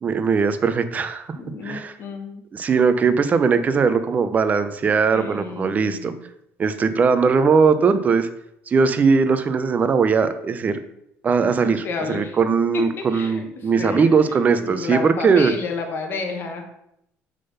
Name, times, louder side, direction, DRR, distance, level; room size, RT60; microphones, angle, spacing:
voice 1, 0.0-1.3 1.6-1.9 2.5-6.1 6.6-8.3 8.7-10.8 11.2-15.5, right 5 dB, 30° right, 11 dB, 0.6 m, -19 dB
voice 2, 1.3-2.4 5.1-6.2 11.6-12.4 12.7-16.6, left 4 dB, 45° left, 3 dB, 1.4 m, -31 dB
6.7 x 3.8 x 5.5 m, 0.77 s
cardioid pair, 130°, 5 cm